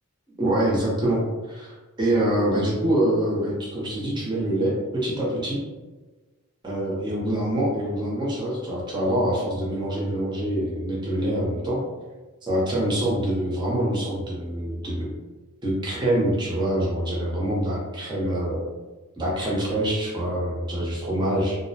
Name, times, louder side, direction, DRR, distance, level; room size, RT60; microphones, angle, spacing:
voice 1, 0.4-5.6 6.6-11.8 12.4-15.1 15.6-18.6 19.2-21.6, right 1 dB, 20° right, -5 dB, 0.7 m, -25 dB
2.5 x 2.0 x 2.7 m, 1.2 s
head